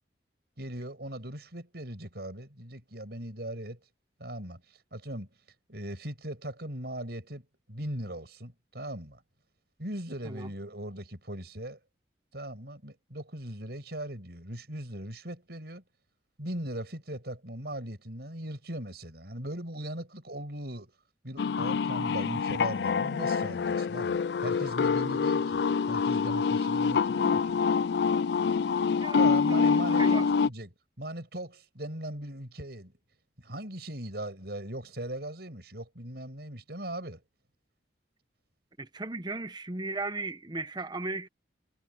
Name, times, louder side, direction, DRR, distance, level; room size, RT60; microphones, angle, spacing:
voice 1, 0.6-3.8 4.2-4.6 4.9-5.3 5.7-9.2 9.8-11.8 12.3-15.8 16.4-20.9 21.2-27.6 29.2-30.7 31.0-32.9 33.4-37.2, right 1 dB, 60° right, 7.8 m, -39 dB
sound 1, 21.4-30.5, left 5 dB, 65° left, 0.4 m, -26 dB
voice 2, 28.9-30.3 38.8-41.3, right 2 dB, 25° right, 1.0 m, -36 dB
head